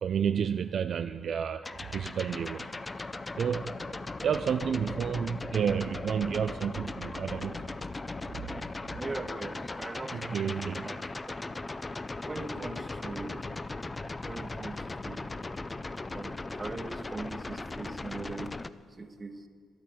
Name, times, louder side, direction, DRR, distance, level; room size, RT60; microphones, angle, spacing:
voice 1, 0.0-3.1 3.4-3.7 4.2-7.7 10.1-10.9, right 7 dB, 55° right, 9 dB, 0.3 m, -31 dB
sound 1, 1.6-18.7, left 2 dB, 20° left, 0.4 m, -38 dB
voice 2, 9.0-11.0 11.3-11.4 12.3-13.4 14.2-15.3 16.1-18.5 19.0-19.4, right 3 dB, 25° right, 7 dB, 1.1 m, -41 dB
12.0 x 8.7 x 9.4 m, 2.1 s
cardioid pair, 90°, 0 cm